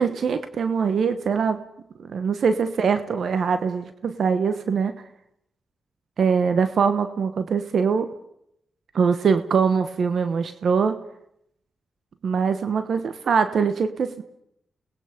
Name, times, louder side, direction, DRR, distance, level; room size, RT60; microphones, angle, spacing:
voice 1, 0.0-1.6 2.0-5.0 6.2-8.1 8.9-11.0 12.2-14.2, right 6 dB, 70° right, 10 dB, 1.2 m, -23 dB
29.5 x 20.0 x 5.2 m, 0.76 s
supercardioid pair, 45°, 0 cm